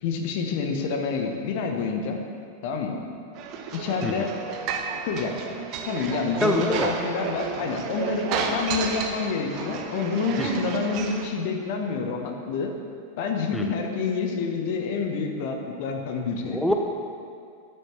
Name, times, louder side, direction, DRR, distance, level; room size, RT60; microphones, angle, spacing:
voice 1, 0.0-2.2 2.6-3.0 3.7-4.4 5.1-5.5 5.9-12.7 13.2-16.6, left 5 dB, 50° left, 3 dB, 1.2 m, -28 dB
sound 1, 3.3-11.3, right 5 dB, 40° right, 1.0 m, -32 dB
voice 2, 6.4-6.9 10.4-10.5 13.5-13.7 16.5-16.7, equal, 5° left, 2 dB, 0.6 m, -24 dB
12.5 x 9.1 x 3.4 m, 2.3 s
figure-of-eight pair, 90°, 0 cm